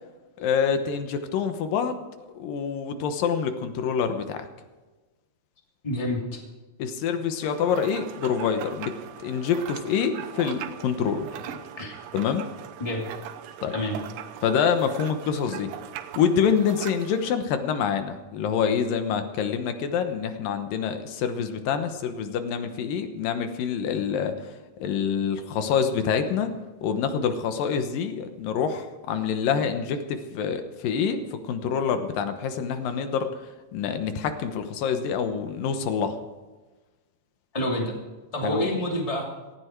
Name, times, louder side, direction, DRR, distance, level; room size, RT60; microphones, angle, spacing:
voice 1, 0.4-2.0 2.4-4.4 6.8-9.0 9.2-11.3 12.1-12.5 13.6-13.7 14.4-15.7 16.2-24.3 24.8-26.5 26.8-33.3 33.7-36.2 38.4-38.6, left 7 dB, 85° left, 8 dB, 2.8 m, -26 dB
voice 2, 5.8-6.4 11.8-12.0 12.8-13.1 13.7-14.0 37.5-38.0 38.3-39.3, left 1 dB, 10° left, -1 dB, 2.4 m, -28 dB
sound 1, 7.4-17.3, right 10 dB, 85° right, 2.5 m, -40 dB
18.0 x 15.0 x 4.6 m, 1.2 s
omnidirectional pair, 3.9 m